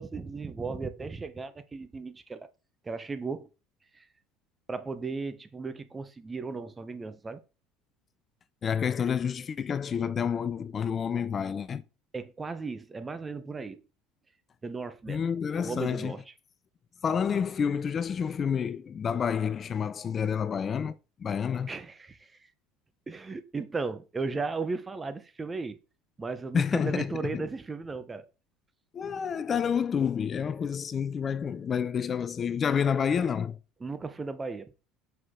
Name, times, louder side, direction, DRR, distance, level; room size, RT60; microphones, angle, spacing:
voice 1, 0.0-2.5 2.8-3.5 3.9-4.1 4.7-7.4 12.1-13.8 14.6-15.2 15.6-16.2 21.7-22.5 23.1-25.8 26.2-28.3 33.8-34.7, right 4 dB, 20° right, 0.8 m, -36 dB
voice 2, 8.6-11.8 15.1-16.2 17.0-21.7 26.5-27.4 28.9-33.6, left 7 dB, 35° left, 0.4 m, -29 dB
5.8 x 4.9 x 3.7 m
hypercardioid pair, 75°, 0 cm